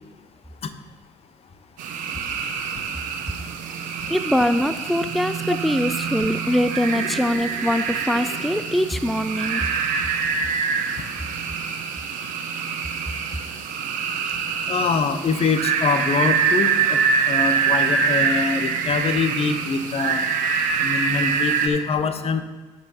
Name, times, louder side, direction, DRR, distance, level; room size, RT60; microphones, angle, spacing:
sound 1, 1.8-21.7, right 6 dB, 60° right, 1.2 m, -25 dB
voice 1, 4.1-9.6, left 1 dB, ahead, 11 dB, 0.4 m, -23 dB
voice 2, 14.7-17.0 17.3-20.2 20.8-22.4, left 5 dB, 40° left, 10 dB, 0.9 m, -24 dB
16.0 x 5.6 x 2.8 m, 1.2 s
hypercardioid pair, 55°, 15 cm